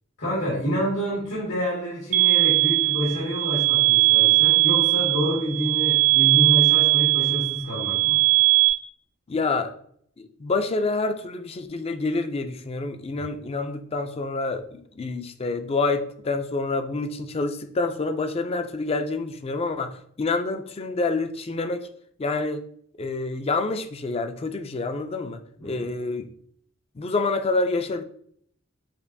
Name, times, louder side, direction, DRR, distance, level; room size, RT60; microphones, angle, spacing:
voice 1, 0.2-8.2 25.6-25.9, equal, 90° left, -7 dB, 1.7 m, -27 dB
sound 1, 2.1-8.7, right 28 dB, 80° right, 0.6 m, -19 dB
voice 2, 9.3-9.7 10.2-21.9 22.2-22.6 23.0-26.3 27.0-28.0, left 3 dB, 30° left, 8 dB, 0.4 m, -27 dB
6.6 x 2.5 x 2.6 m, 0.64 s
head